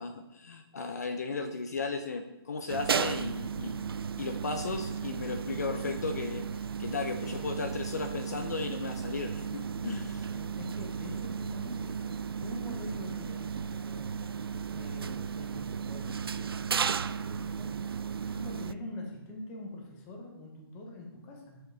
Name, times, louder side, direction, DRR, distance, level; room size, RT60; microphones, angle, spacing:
voice 1, 0.0-3.9 4.2-6.5 6.8-10.3, left 4 dB, 40° left, 7 dB, 0.6 m, -35 dB
sound 1, 2.7-18.7, right 6 dB, 65° right, 0.4 m, -35 dB
voice 2, 10.3-21.6, left 1 dB, 10° left, 1 dB, 0.8 m, -45 dB
10.5 x 7.0 x 3.3 m, 1.1 s
hypercardioid pair, 175°, 13 cm